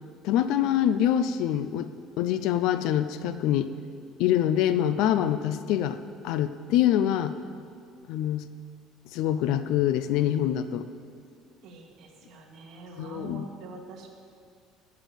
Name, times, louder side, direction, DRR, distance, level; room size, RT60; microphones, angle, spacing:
voice 1, 0.2-1.9 2.2-3.7 4.2-6.0 6.2-7.3 8.1-8.4 9.1-10.9 13.0-13.4, left 11 dB, 60° left, 12 dB, 0.5 m, -25 dB
voice 2, 11.6-14.1, right 4 dB, 45° right, -1 dB, 2.3 m, -44 dB
13.5 x 8.3 x 8.2 m, 2.3 s
cardioid pair, 180°, 0 cm